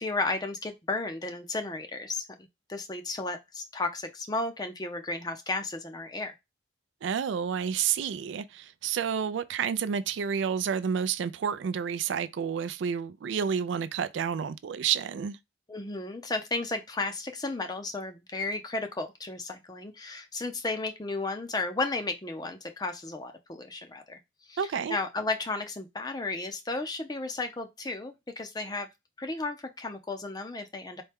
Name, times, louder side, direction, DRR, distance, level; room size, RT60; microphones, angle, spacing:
voice 1, 0.0-6.3 15.7-24.2 24.5-28.9 29.2-31.0, left 3 dB, 20° left, 0.5 m, -34 dB
voice 2, 7.0-15.4 24.6-25.0, right 7 dB, 70° right, 0.3 m, -30 dB
4.2 x 2.2 x 3.4 m
head